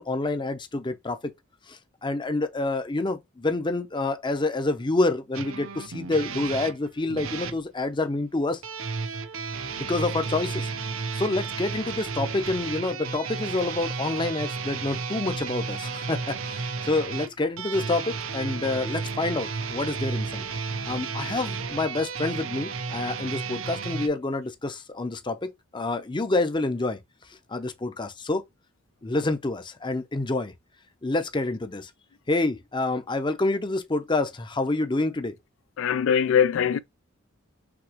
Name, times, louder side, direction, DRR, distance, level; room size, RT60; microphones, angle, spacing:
voice 1, 0.0-1.3 1.7-8.6 9.7-10.7 11.1-20.5 20.8-27.0 27.5-28.4 29.0-30.5 31.0-31.9 32.3-35.3, left 2 dB, 25° left, 0.6 m, -28 dB
sound 1, 5.3-7.6 8.6-24.1, right 5 dB, 80° right, 0.7 m, -33 dB
voice 2, 35.8-36.8, left 8 dB, 70° left, 0.3 m, -21 dB
6.0 x 2.9 x 2.9 m
head